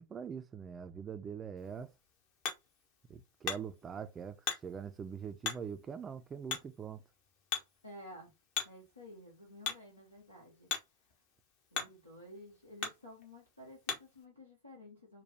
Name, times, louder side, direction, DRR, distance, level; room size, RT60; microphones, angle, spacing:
voice 1, 0.0-1.9 3.1-7.0, right 7 dB, 20° right, 0.4 m, -43 dB
Hammer, 1.6-14.2, left 7 dB, 45° left, 1.0 m, -44 dB
voice 2, 7.8-8.3 8.6-10.7 11.7-15.2, left 1 dB, 80° left, 1.3 m, -53 dB
4.3 x 2.2 x 3.2 m
figure-of-eight pair, 90°, 0 cm